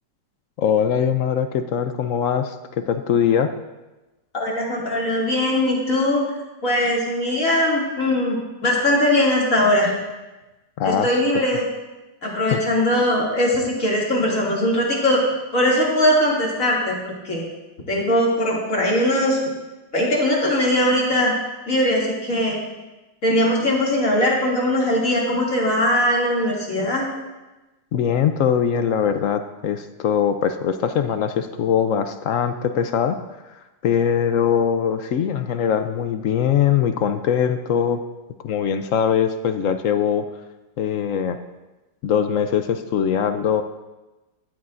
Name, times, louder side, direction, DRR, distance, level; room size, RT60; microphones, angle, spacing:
voice 1, 0.6-3.5 10.8-11.1 12.5-12.6 27.9-33.2 33.8-38.0 38.4-40.3 40.8-41.4 42.0-43.6, left 8 dB, 65° left, 9 dB, 0.8 m, -21 dB
voice 2, 4.3-6.2 6.6-9.9 10.8-11.6 12.2-15.2 15.5-17.4 17.9-19.4 19.9-21.3 21.7-22.6 23.2-27.0, left 1 dB, 50° left, -4 dB, 2.9 m, -20 dB
15.0 x 12.0 x 2.6 m, 1.1 s
omnidirectional pair, 1.9 m